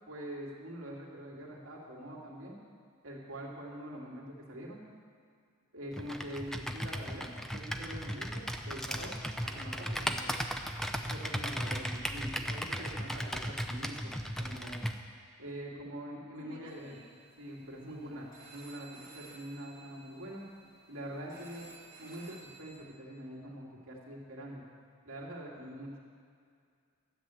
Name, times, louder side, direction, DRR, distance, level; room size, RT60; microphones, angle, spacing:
voice 1, 0.1-2.6 3.0-4.8 5.7-9.1 9.4-10.3 11.0-14.8 15.4-17.0 17.4-20.4 20.9-21.7 22.0-24.7 25.1-25.9, right 1 dB, 65° right, -4 dB, 2.7 m, -44 dB
Computer keyboard, 5.9-15.0, equal, ahead, 0.5 m, -36 dB
voice 2, 11.6-12.8 16.3-17.2 17.9-18.2 25.5-26.0, right 1 dB, 20° right, -7 dB, 1.9 m, -55 dB
sound 1, 16.7-22.8, right 4 dB, 45° right, 2.6 m, -55 dB
13.5 x 8.3 x 7.8 m, 2.2 s
head